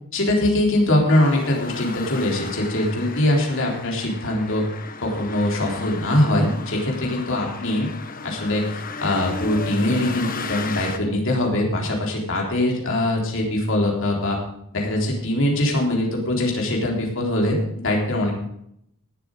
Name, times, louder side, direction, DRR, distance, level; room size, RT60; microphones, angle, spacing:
voice 1, 0.1-4.6 5.0-7.9 8.2-14.4 14.7-18.3, left 1 dB, 60° left, -1 dB, 3.7 m, -22 dB
sound 1, 1.1-11.0, left 4 dB, 40° left, 1.2 m, -35 dB
18.5 x 7.9 x 5.0 m, 0.72 s
head